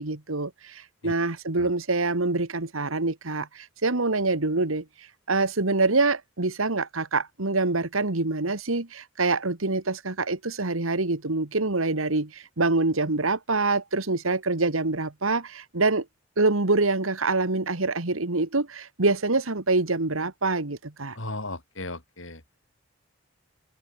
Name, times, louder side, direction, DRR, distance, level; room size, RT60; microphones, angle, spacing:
voice 1, 0.0-4.9 5.3-16.1 16.4-21.2, right 3 dB, 80° right, 1.8 m, -25 dB
voice 2, 21.1-22.4, left 2 dB, 70° left, 5.9 m, -36 dB
head